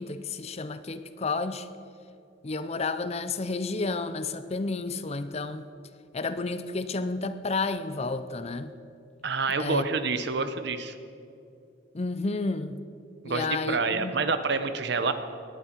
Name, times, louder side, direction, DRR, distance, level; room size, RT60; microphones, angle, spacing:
voice 1, 0.0-1.7 2.4-5.7 6.1-8.7 9.6-9.9 11.9-12.8 13.2-14.2, left 3 dB, 35° left, 0.6 m, -31 dB
voice 2, 9.2-10.9 13.2-15.1, right 4 dB, 60° right, 0.9 m, -28 dB
18.0 x 12.0 x 4.6 m
head